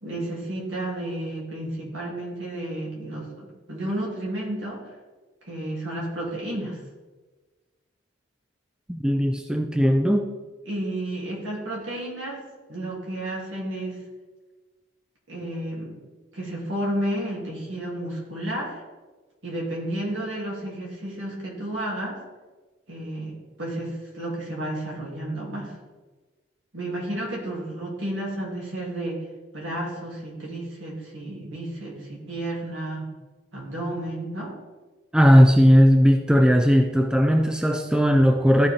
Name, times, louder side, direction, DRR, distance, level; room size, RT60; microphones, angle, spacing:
voice 1, 0.0-4.8 5.4-6.8 10.7-12.4 12.7-14.0 15.3-15.9 16.3-18.8 19.4-22.2 22.9-25.7 26.7-29.2 29.5-33.1 33.5-34.5, right 1 dB, 70° right, -4 dB, 2.9 m, -32 dB
voice 2, 8.9-10.3 35.1-38.7, equal, 5° right, 5 dB, 0.3 m, -17 dB
13.5 x 5.0 x 3.7 m, 1.3 s
head